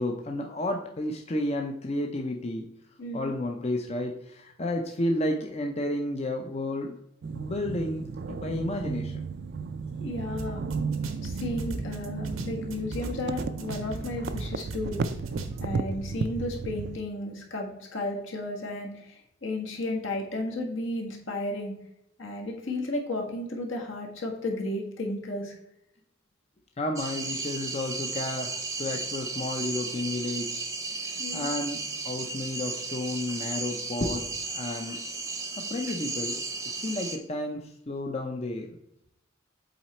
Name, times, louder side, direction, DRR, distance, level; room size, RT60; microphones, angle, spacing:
voice 1, 0.0-2.7 3.1-7.0 7.4-9.2 26.8-30.7 31.0-35.0 35.6-36.4 36.8-38.7, left 1 dB, 30° left, 2 dB, 0.6 m, -32 dB
voice 2, 3.0-3.3 10.0-10.6 11.2-15.0 15.6-21.8 22.2-25.6 31.2-31.5, left 2 dB, 70° left, 1 dB, 1.7 m, -33 dB
sound 1, 7.2-17.0, right 4 dB, 55° right, 0.4 m, -34 dB
sound 2, 10.4-10.5 10.7-13.1 13.4-15.6, right 2 dB, 90° right, 0.9 m, -38 dB
sound 3, 27.0-37.2, right 3 dB, 15° right, 0.7 m, -34 dB
7.7 x 4.1 x 4.3 m, 0.78 s
head